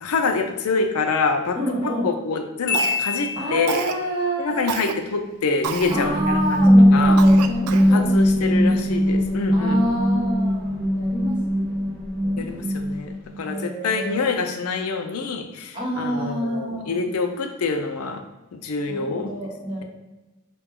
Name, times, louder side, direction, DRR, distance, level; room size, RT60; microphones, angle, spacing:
voice 1, 0.0-1.6 1.8-3.8 4.4-7.2 7.8-9.8 12.4-18.2 18.5-19.3, left 4 dB, 90° left, 6 dB, 0.5 m, -26 dB
voice 2, 1.5-2.1 3.3-5.0 5.9-8.8 9.5-12.6 13.4-14.2 15.7-17.1 18.9-19.8, right 1 dB, 25° right, -7 dB, 1.3 m, -29 dB
Marimba xylophone, 2.7-4.1, left 6 dB, 50° left, 0.7 m, -27 dB
Cough, 2.7-3.3 3.7-4.0 4.7-4.9 5.6-6.0 6.5-6.6 7.2-7.9, right 7 dB, 85° right, 0.3 m, -29 dB
sound 1, 5.6-13.4, equal, 10° left, 0.9 m, -19 dB
4.8 x 2.2 x 3.6 m, 1.1 s
head